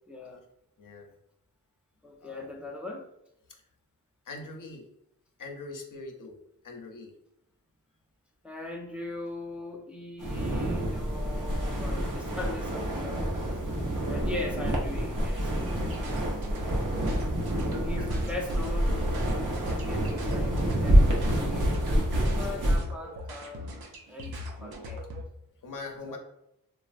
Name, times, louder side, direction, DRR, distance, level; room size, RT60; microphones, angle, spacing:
voice 1, 0.1-0.4 2.0-3.1 8.4-13.3 14.1-16.1 17.7-19.0 19.3-21.8 22.2-23.6 24.1-25.1 26.1-26.2, left 2 dB, 5° right, 0 dB, 0.5 m, -40 dB
voice 2, 0.8-1.1 2.2-2.6 3.5-3.6 4.3-4.8 5.4-6.3 6.6-7.1 16.5-16.9 17.4-17.9 25.6-26.2, left 3 dB, 60° left, 1 dB, 0.6 m, -43 dB
sound 1, 10.2-22.8, equal, 55° right, 0.9 m, -27 dB
sound 2, 15.7-25.2, equal, 85° right, 0.7 m, -39 dB
3.1 x 2.4 x 2.4 m, 0.82 s
cardioid pair, 50°, 36 cm